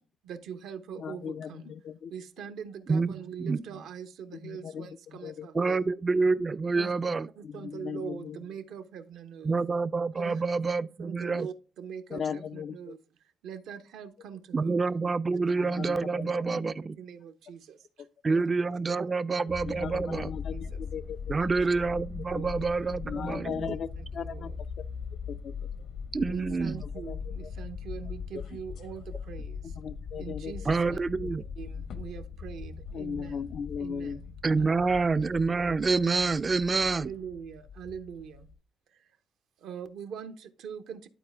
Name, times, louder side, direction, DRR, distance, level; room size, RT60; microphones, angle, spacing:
voice 1, 0.2-1.7 2.1-5.8 6.7-6.9 7.4-9.5 10.2-10.4 11.0-13.0 13.4-14.8 17.0-18.4 20.5-20.8 21.4-21.7 22.3-22.5 22.8-22.9 23.3-24.6 26.3-29.8 30.2-31.0 31.6-33.4 33.8-34.3 37.0-38.5 38.9-39.1 39.6-41.1, right 7 dB, 80° right, 0.7 m, -42 dB
voice 2, 1.0-2.1 4.3-5.5 7.4-8.4 12.1-13.0 15.6-16.7 19.7-21.3 22.3-22.4 23.0-24.5 25.3-25.5 26.8-27.5 28.3-28.4 29.6-30.5 32.9-34.2, left 7 dB, 60° left, 0.3 m, -38 dB
voice 3, 2.9-3.6 5.5-7.3 9.4-11.5 14.5-17.0 18.2-20.3 21.3-23.8 26.1-26.8 30.7-31.4 34.4-37.1, right 4 dB, 30° right, 0.3 m, -27 dB
sound 1, 19.5-38.5, left 5 dB, 75° left, 1.0 m, -40 dB
11.0 x 4.2 x 3.4 m
cardioid pair, 90°, 0 cm